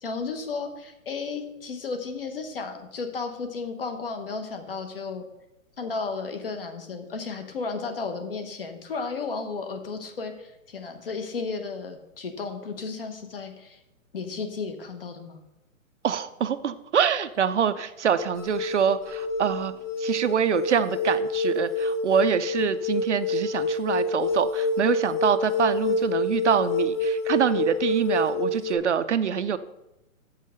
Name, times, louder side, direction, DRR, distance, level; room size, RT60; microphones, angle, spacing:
voice 1, 0.0-5.2 5.8-13.8 14.1-15.4, left 4 dB, 40° left, 6 dB, 1.1 m, -33 dB
voice 2, 16.0-19.7 20.0-29.6, right 8 dB, 55° right, 13 dB, 0.5 m, -25 dB
sound 1, 18.2-28.7, left 2 dB, 60° left, 1.5 m, -27 dB
7.3 x 5.6 x 6.6 m, 0.91 s
hypercardioid pair, 180°, 41 cm